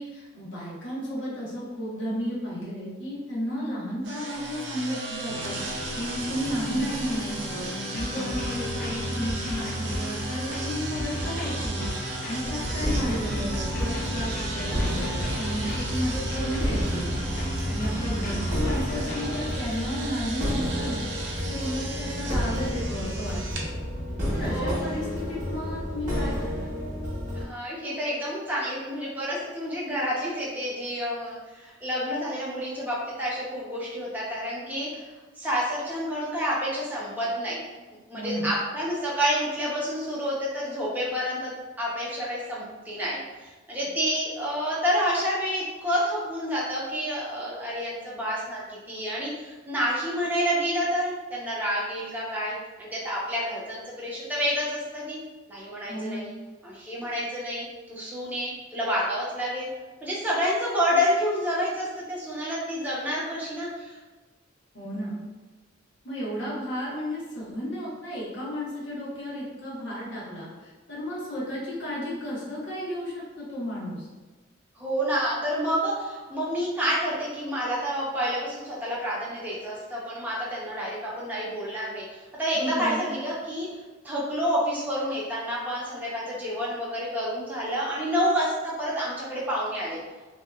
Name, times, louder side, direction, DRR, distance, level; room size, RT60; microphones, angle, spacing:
voice 1, 0.0-5.5 5.9-7.6 7.9-11.9 12.2-17.1 17.6-21.0 21.4-23.8 24.3-26.7 38.1-38.5 55.9-56.2 64.7-65.2 66.0-74.1 82.5-83.0, equal, 75° left, -7 dB, 1.0 m, -33 dB
sound 1, 4.0-23.7, right 3 dB, 65° right, 0.4 m, -37 dB
sound 2, 5.3-19.6, left 1 dB, 45° left, 0.4 m, -34 dB
sound 3, 12.4-27.4, equal, 40° right, 0.8 m, -31 dB
voice 2, 27.3-35.1 35.4-37.6 38.1-41.5 41.8-55.2 55.5-56.3 56.6-59.7 60.0-64.0 74.8-83.7 84.0-90.0, equal, 10° right, -6 dB, 0.6 m, -29 dB
2.8 x 2.2 x 2.3 m, 1.2 s
head